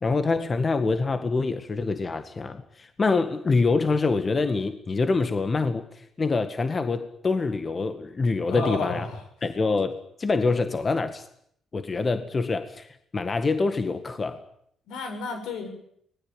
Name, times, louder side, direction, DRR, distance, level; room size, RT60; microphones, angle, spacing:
voice 1, 0.0-9.1 9.4-11.3 11.7-14.4, left 3 dB, 35° left, 9 dB, 1.8 m, -25 dB
voice 2, 8.5-9.2 14.9-15.7, left 3 dB, 85° left, 6 dB, 7.4 m, -32 dB
25.0 x 20.0 x 9.2 m, 0.70 s
cardioid pair, 90°, 0 cm